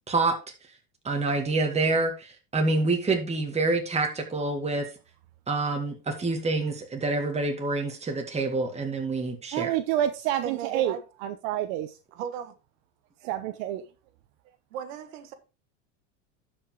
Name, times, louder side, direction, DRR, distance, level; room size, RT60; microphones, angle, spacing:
voice 1, 0.1-0.4 1.0-4.9 5.5-9.7, right 3 dB, 15° right, 2.2 m, -27 dB
voice 2, 9.5-10.9 11.2-12.0 13.2-13.8, right 12 dB, 65° right, 0.9 m, -28 dB
voice 3, 10.4-11.0 12.1-12.5 14.7-15.3, right 8 dB, 85° right, 1.5 m, -36 dB
12.0 x 5.4 x 3.8 m
supercardioid pair, 125°, 38 cm